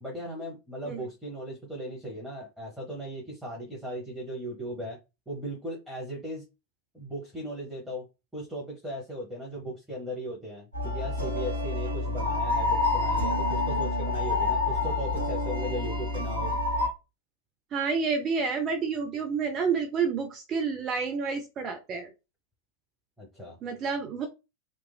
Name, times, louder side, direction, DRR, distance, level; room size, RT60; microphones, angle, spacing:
voice 1, 0.0-5.0 5.3-6.4 6.9-8.1 8.3-16.5 23.2-23.6, equal, ahead, -5 dB, 0.9 m, -37 dB
sound 1, 10.7-16.9, left 2 dB, 75° right, 0.8 m, -28 dB
voice 2, 17.7-22.1 23.6-24.3, right 5 dB, 30° right, 4 dB, 0.5 m, -29 dB
3.0 x 2.3 x 2.2 m, 0.26 s
figure-of-eight pair, 90°, 0 cm